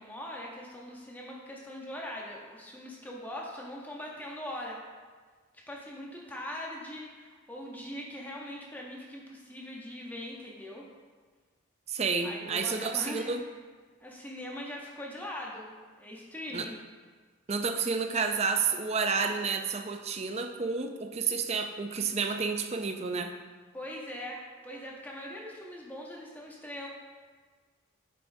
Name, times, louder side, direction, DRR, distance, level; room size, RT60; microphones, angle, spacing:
voice 1, 0.0-4.8 5.7-10.9 12.2-13.3 14.0-16.8 17.8-17.9 23.7-26.9, left 1 dB, 10° left, -2 dB, 0.7 m, -41 dB
voice 2, 11.9-13.4 16.5-16.7 17.5-23.3, right 5 dB, 30° right, 6 dB, 0.4 m, -30 dB
8.1 x 5.9 x 2.6 m, 1.5 s
head